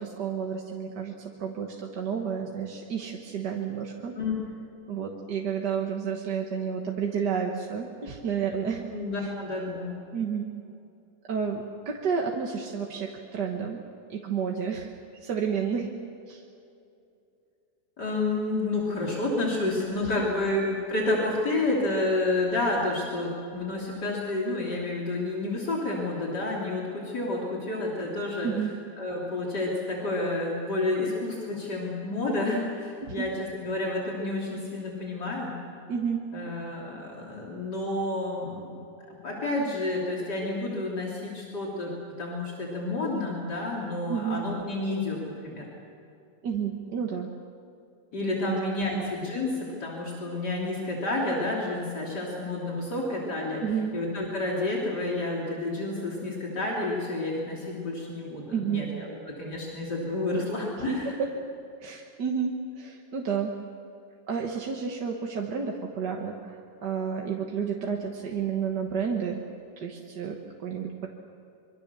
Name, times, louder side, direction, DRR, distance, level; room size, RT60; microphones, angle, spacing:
voice 1, 0.0-4.2 4.9-8.9 9.2-9.3 10.1-10.5 11.3-13.8 14.1-14.9 15.2-15.9 16.3-16.4 20.0-20.1 28.4-28.7 33.0-33.3 35.9-36.2 44.1-44.4 46.4-47.3 48.4-48.6 48.9-49.0 53.6-53.9 58.5-58.9 60.9-61.3 61.8-63.6 64.3-69.4 69.8-71.1, right 6 dB, 75° right, 1 dB, 2.0 m, -31 dB
voice 2, 8.9-10.0 18.0-28.5 29.0-35.5 36.3-38.8 39.1-41.9 42.2-45.7 48.1-53.6 53.9-61.1, left 2 dB, 70° left, -3 dB, 3.7 m, -30 dB
25.5 x 23.5 x 6.9 m, 2.6 s
omnidirectional pair, 1.8 m